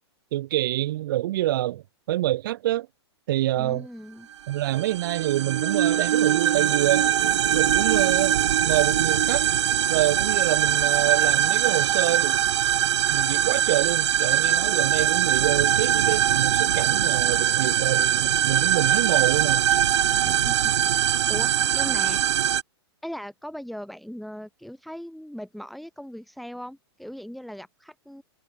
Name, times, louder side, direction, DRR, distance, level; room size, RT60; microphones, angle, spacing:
voice 1, 0.3-2.9 3.3-3.9 4.5-7.1 7.5-8.4 8.6-9.5 9.9-12.4 13.1-19.7, right 15 dB, 50° right, 3.0 m, -26 dB
voice 2, 3.5-4.3 20.1-20.6 21.3-22.3 23.0-28.2, equal, ahead, 3.1 m, -39 dB
sound 1, 4.5-22.6, right 10 dB, 85° right, 0.7 m, -22 dB
hypercardioid pair, 165°, 15 cm